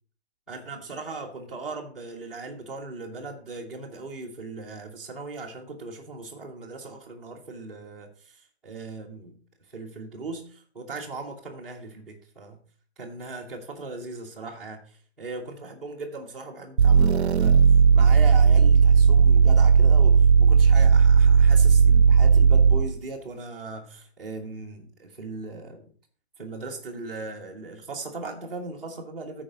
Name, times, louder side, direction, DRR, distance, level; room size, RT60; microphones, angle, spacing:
voice 1, 0.5-9.4 9.7-12.6 13.0-17.6 17.9-25.9 26.4-29.4, right 3 dB, ahead, -8 dB, 0.5 m, -38 dB
sound 1, 16.8-23.0, right 6 dB, 75° right, 0.5 m, -16 dB
13.5 x 4.7 x 4.0 m, 0.43 s
figure-of-eight pair, 135°, 33 cm